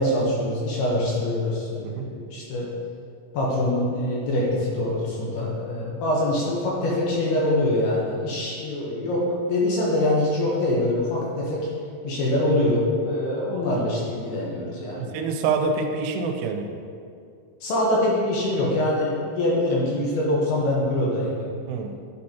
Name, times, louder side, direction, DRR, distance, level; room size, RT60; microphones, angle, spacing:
voice 1, 0.0-2.7 3.3-11.6 12.0-15.1 17.6-21.5, left 1 dB, 70° left, -4 dB, 2.6 m, -24 dB
voice 2, 15.0-16.6 21.7-22.0, right 4 dB, 85° right, 4 dB, 3.1 m, -26 dB
11.5 x 6.4 x 2.8 m, 2.3 s
omnidirectional pair, 5.5 m